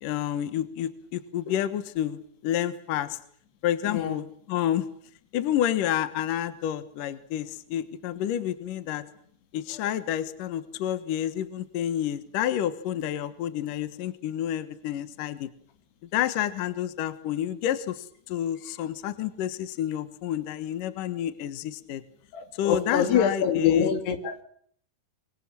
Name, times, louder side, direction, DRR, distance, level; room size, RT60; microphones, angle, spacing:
voice 1, 0.0-3.2 3.6-4.2 4.5-4.9 5.3-9.0 9.5-15.5 16.1-22.0 22.6-23.9, left 11 dB, 65° left, 12 dB, 2.7 m, -29 dB
voice 2, 3.8-4.2 9.7-9.8 22.3-24.4, left 8 dB, 85° left, 8 dB, 4.6 m, -25 dB
24.5 x 24.0 x 7.6 m, 0.63 s
omnidirectional pair, 4.6 m